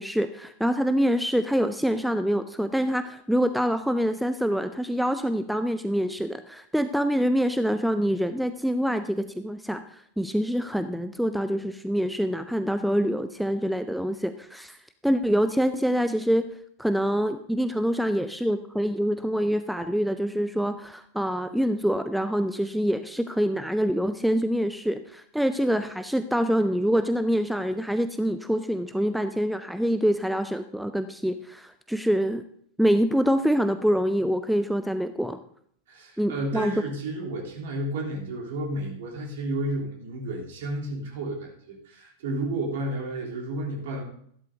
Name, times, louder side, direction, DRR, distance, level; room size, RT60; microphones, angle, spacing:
voice 1, 0.0-14.8 15.0-16.5 16.8-32.4 32.8-35.4 36.2-36.7, equal, ahead, 10 dB, 0.5 m, -25 dB
voice 2, 35.9-44.0, right 1 dB, 55° right, -1 dB, 3.1 m, -32 dB
14.0 x 12.0 x 2.7 m, 0.65 s
figure-of-eight pair, 90°, 0 cm